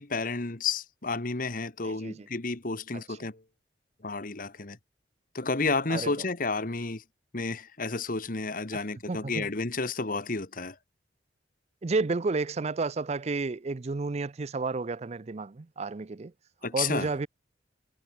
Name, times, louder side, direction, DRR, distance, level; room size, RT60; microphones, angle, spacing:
voice 1, 0.0-3.4 4.0-4.8 5.3-7.0 7.3-10.7 16.6-17.1, left 3 dB, 50° left, 1.5 m, -31 dB
voice 2, 1.8-2.3 2.9-3.2 5.9-6.2 8.7-8.8 9.1-9.5 11.8-16.3 16.7-17.3, right 3 dB, 35° right, 0.5 m, -31 dB
head